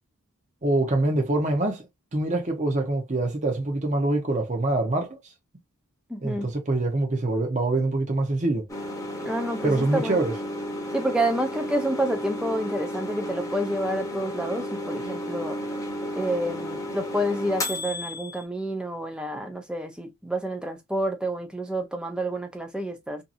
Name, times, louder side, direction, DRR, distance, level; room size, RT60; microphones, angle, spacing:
voice 1, 0.6-5.2 6.2-8.7 9.6-10.3, right 2 dB, 30° right, 0.8 m, -25 dB
voice 2, 6.1-6.5 9.2-10.2 10.9-15.6 16.1-23.2, right 1 dB, 5° right, 0.5 m, -29 dB
sound 1, 8.7-18.4, left 1 dB, 15° left, 0.8 m, -33 dB
2.7 x 2.5 x 2.5 m
head